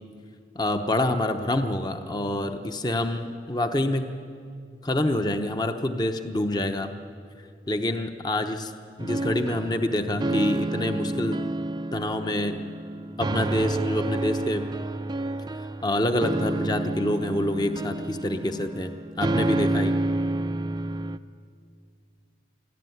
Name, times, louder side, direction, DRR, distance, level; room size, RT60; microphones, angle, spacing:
voice 1, 0.5-4.2 4.8-6.9 7.7-8.7 9.0-11.4 11.9-12.6 13.2-14.6 15.8-18.9 19.2-20.0, left 1 dB, 25° left, 6 dB, 0.9 m, -26 dB
sound 1, 9.0-21.2, right 2 dB, 25° right, 0.5 m, -29 dB
26.5 x 14.5 x 9.4 m, 2.3 s
head